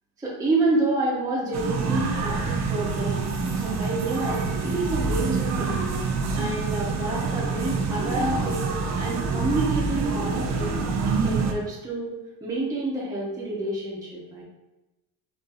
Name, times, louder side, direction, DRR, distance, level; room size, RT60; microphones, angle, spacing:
voice 1, 0.2-3.3 3.6-5.8 6.3-8.6 9.0-10.8 11.0-12.1 12.4-14.4, right 2 dB, 5° right, -6 dB, 0.7 m, -28 dB
sound 1, 1.5-11.5, right 4 dB, 35° right, 0.4 m, -26 dB
4.2 x 2.6 x 3.7 m, 1.0 s
cardioid pair, 155°, 48 cm